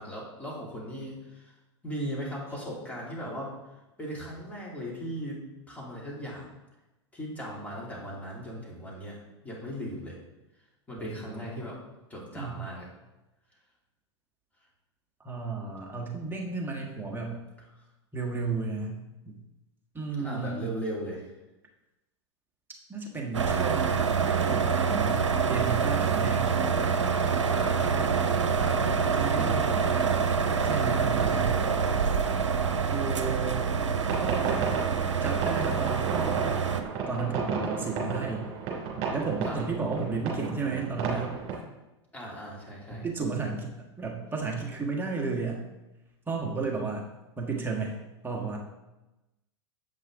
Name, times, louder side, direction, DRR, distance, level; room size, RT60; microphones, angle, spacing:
voice 1, 0.0-1.5 1.8-3.6 4.0-6.4 7.1-9.2 9.4-10.2 10.9-11.8 12.1-12.9 20.2-21.3 27.5-30.3 39.4-39.6 42.1-43.1, equal, 10° left, -5 dB, 2.9 m, -38 dB
voice 2, 11.0-11.5 12.3-12.6 15.2-17.4 18.1-19.4 19.9-20.7 22.9-24.1 24.5-26.5 29.2-29.5 30.6-31.6 32.9-33.6 34.2-34.8 35.2-36.6 37.1-38.5 39.1-41.3 42.9-45.6 46.3-47.1 47.4-47.9 48.2-48.6, right 4 dB, 15° right, -1 dB, 1.4 m, -33 dB
sound 1, 23.3-36.8, right 6 dB, 85° right, 0.7 m, -26 dB
sound 2, 34.0-41.6, right 5 dB, 45° right, 2.9 m, -33 dB
8.1 x 5.5 x 3.9 m, 1.0 s
hypercardioid pair, 95°, 15 cm